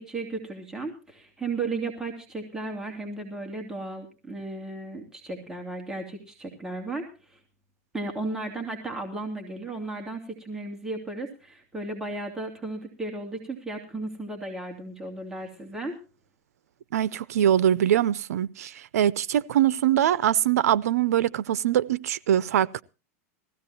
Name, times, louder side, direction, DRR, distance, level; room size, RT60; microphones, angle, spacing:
voice 1, 0.0-7.4 7.9-16.0, right 2 dB, 5° right, 2.7 m, -35 dB
voice 2, 16.9-22.8, right 10 dB, 85° right, 0.6 m, -23 dB
20.0 x 15.5 x 2.8 m
supercardioid pair, 130°, 8 cm